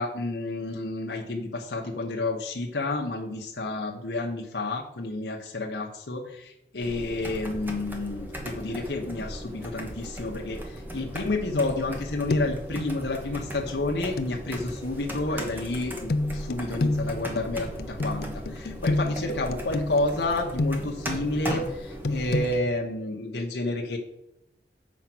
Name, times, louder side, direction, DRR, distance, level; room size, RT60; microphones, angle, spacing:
voice 1, 0.0-24.0, left 2 dB, 80° left, 1 dB, 1.0 m, -30 dB
sound 1, 6.8-22.6, equal, 10° right, 1.1 m, -37 dB
sound 2, 11.5-12.0 12.3-12.7 14.2-14.3 16.1-21.1 22.0-22.5, left 2 dB, 60° left, 0.5 m, -29 dB
7.3 x 5.1 x 6.0 m, 0.85 s
head